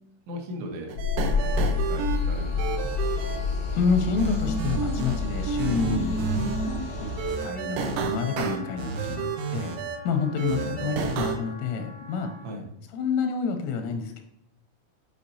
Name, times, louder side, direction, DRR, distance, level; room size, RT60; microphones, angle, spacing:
voice 1, 0.3-0.9 1.3-2.9 8.9-9.6 10.5-10.9 12.4-12.7, equal, 70° right, 1 dB, 3.4 m, -39 dB
sound 1, 0.9-7.3, left 4 dB, 70° left, 1.3 m, -28 dB
sound 2, 0.9-2.2 2.6-3.4 4.2-5.2 5.5-6.8 7.2-10.0 10.4-11.4, right 5 dB, 90° right, 3.4 m, -30 dB
Wind instrument woodwind instrument, 1.2-12.5, left 1 dB, 45° right, 1.4 m, -45 dB
voice 2, 3.7-6.2 7.0-7.1 7.4-9.8 10.0-12.3 12.9-14.2, left 5 dB, 85° left, 5 dB, 3.1 m, -28 dB
8.5 x 4.9 x 2.8 m, 0.81 s
omnidirectional pair, 5.8 m